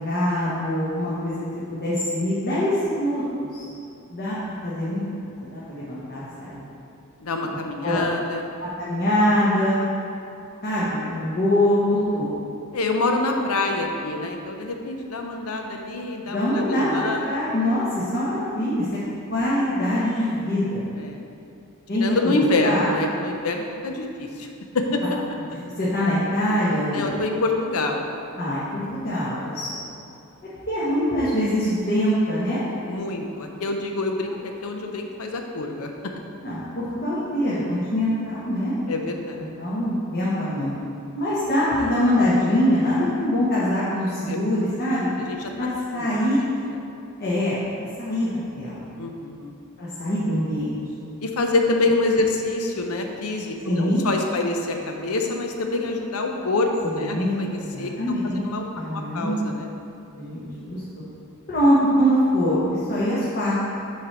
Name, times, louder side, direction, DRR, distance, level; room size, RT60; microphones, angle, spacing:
voice 1, 0.0-1.4 1.7-3.7 4.1-4.4 4.6-5.0 5.2-6.7 7.8-8.0 8.8-9.8 10.6-12.3 16.3-18.9 19.3-20.8 21.9-22.1 22.4-22.9 25.8-27.2 28.4-29.8 30.7-32.6 36.4-38.7 39.4-40.7 41.2-45.1 45.6-46.4 47.2-48.9 49.8-50.8 53.6-54.0 56.8-58.4 58.8-59.5 60.1-61.0 61.5-63.5, equal, 45° left, -9 dB, 1.2 m, -24 dB
voice 2, 7.2-8.4 12.7-17.3 21.0-21.2 22.0-24.5 24.7-25.0 26.8-28.0 32.9-35.9 38.9-39.5 44.3-44.4 45.2-45.5 45.9-46.3 49.0-49.5 51.2-57.9 58.3-58.6 58.9-59.7, left 2 dB, 80° left, 3 dB, 0.7 m, -26 dB
7.0 x 3.3 x 6.0 m, 2.6 s
head